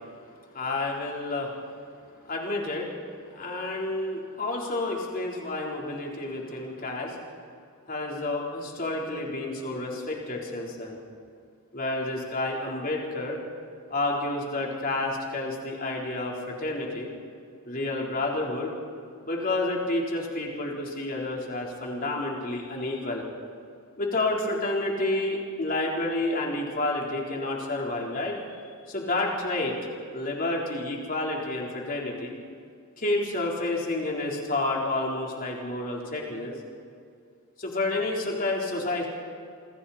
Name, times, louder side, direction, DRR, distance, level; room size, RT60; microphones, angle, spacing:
voice 1, 0.5-1.5 2.2-2.9 3.3-7.2 7.9-11.0 11.7-13.4 13.9-17.1 17.6-18.7 19.2-23.2 24.0-28.4 28.9-29.8 30.1-32.4 33.0-36.5 37.6-39.1, left 2 dB, 40° left, -2 dB, 4.0 m, -30 dB
27.5 x 25.0 x 4.3 m, 2.3 s
head